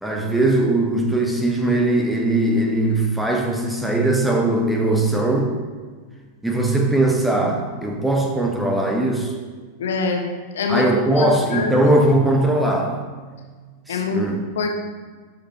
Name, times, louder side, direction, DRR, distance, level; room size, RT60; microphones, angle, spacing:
voice 1, 0.0-5.5 6.4-9.3 10.7-13.0 13.9-14.4, right 1 dB, 5° right, 1 dB, 1.0 m, -20 dB
voice 2, 9.8-10.2 10.5-10.9 11.2-11.3 11.5-11.8 13.9-14.3 14.5-14.7, left 4 dB, 60° left, 2 dB, 1.0 m, -23 dB
11.0 x 4.9 x 3.0 m, 1.5 s
figure-of-eight pair, 90°, 0 cm